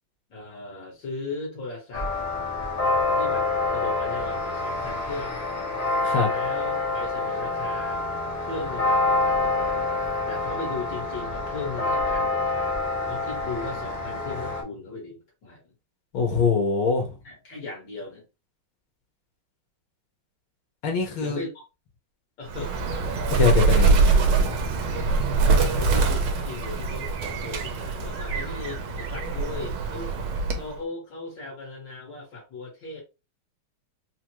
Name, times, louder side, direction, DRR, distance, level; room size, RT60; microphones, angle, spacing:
voice 1, 0.3-2.1 3.1-5.5 6.3-8.0 8.4-9.9 10.3-12.7 13.1-15.7 17.2-18.3 21.2-21.5 22.4-22.7 23.7-24.2 24.9-25.1 25.4-30.1 30.5-33.0, left 3 dB, 65° left, 2.3 m, -37 dB
sound 1, 1.9-14.6, left 2 dB, 45° left, 0.4 m, -27 dB
voice 2, 16.1-17.1 20.8-21.4 23.3-24.5, left 5 dB, 80° left, 2.0 m, -24 dB
Bird, 22.5-30.8, right 4 dB, 80° right, 1.7 m, -23 dB
5.0 x 2.2 x 3.0 m
omnidirectional pair, 2.3 m